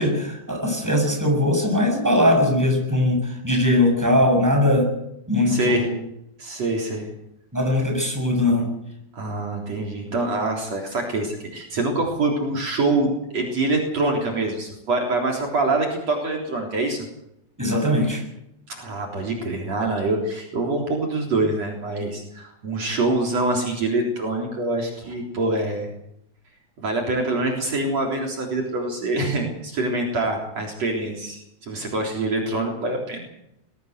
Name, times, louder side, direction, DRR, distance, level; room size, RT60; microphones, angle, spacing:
voice 1, 0.0-4.9 5.3-5.9 7.5-8.7 17.6-18.2, left 1 dB, 5° right, 1 dB, 7.1 m, -20 dB
voice 2, 5.5-5.9 6.4-7.1 9.2-17.1 18.7-25.9 26.8-33.2, right 2 dB, 55° right, 0 dB, 4.8 m, -25 dB
21.5 x 16.5 x 8.1 m, 0.80 s
omnidirectional pair, 3.5 m